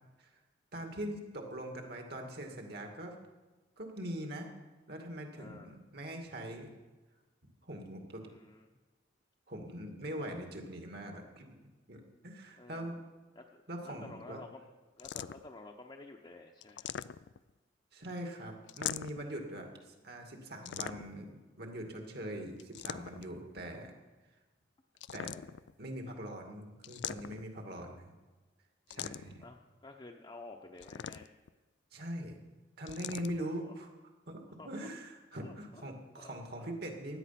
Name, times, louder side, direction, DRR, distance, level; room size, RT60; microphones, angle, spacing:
voice 1, 0.7-3.2 3.8-4.5 4.9-6.7 7.6-8.2 9.5-13.0 13.7-14.4 17.9-23.9 25.1-25.3 25.8-28.1 28.9-29.4 31.9-32.4 32.8-33.9 34.3-34.4 34.6-37.2, right 1 dB, 55° right, 3 dB, 2.3 m, -42 dB
voice 2, 5.4-5.8 8.2-8.7 12.6-13.0 13.3-14.7 15.0-16.9 19.5-20.0 27.6-27.9 28.9-31.3 33.3-33.8 34.5-34.9 35.4-35.9 36.2-36.3, left 2 dB, 25° left, 0 dB, 0.9 m, -52 dB
sound 1, 15.0-15.6 16.6-17.5 18.7-19.3 20.7-21.3 22.6-23.4 25.0-25.7 26.8-27.6 28.9-29.5 30.8-31.5 32.9-33.4, left 10 dB, 65° left, 0.4 m, -41 dB
16.5 x 11.0 x 5.9 m, 1.2 s
head